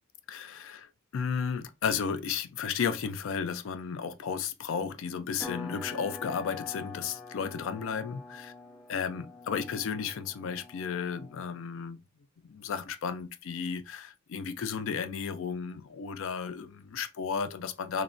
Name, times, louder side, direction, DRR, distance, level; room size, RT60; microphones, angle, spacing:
voice 1, 0.3-8.5 8.9-12.0 12.4-18.0, left 6 dB, 70° left, 0.4 m, -33 dB
sound 1, 5.4-11.6, left 4 dB, 5° right, 0.4 m, -45 dB
3.0 x 2.1 x 2.5 m
head